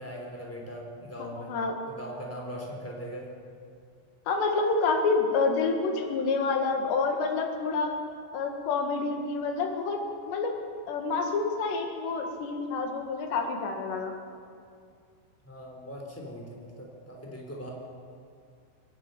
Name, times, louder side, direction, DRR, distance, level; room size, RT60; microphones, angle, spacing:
voice 1, 0.0-1.5 1.9-3.3 15.4-17.7, equal, 5° left, -1 dB, 2.9 m, -40 dB
voice 2, 1.4-1.8 4.3-7.9 8.3-10.6 10.9-14.1, left 4 dB, 70° left, 3 dB, 3.9 m, -28 dB
22.5 x 12.5 x 9.3 m, 2.3 s
omnidirectional pair, 5.4 m